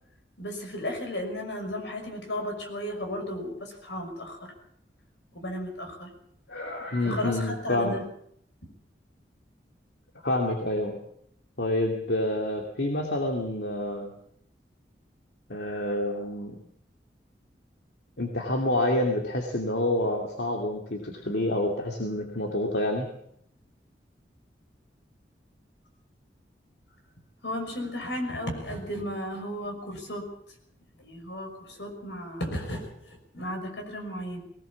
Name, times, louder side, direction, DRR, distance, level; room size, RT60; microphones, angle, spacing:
voice 1, 0.4-4.5 5.3-6.1 6.5-8.0 27.4-30.3 31.0-34.4, left 1 dB, 90° left, 4 dB, 5.8 m, -34 dB
voice 2, 6.5-8.0 10.2-11.0 11.6-14.1 15.5-16.6 18.2-23.1, left 1 dB, 75° left, 1 dB, 2.7 m, -28 dB
20.0 x 18.5 x 7.2 m, 0.69 s
head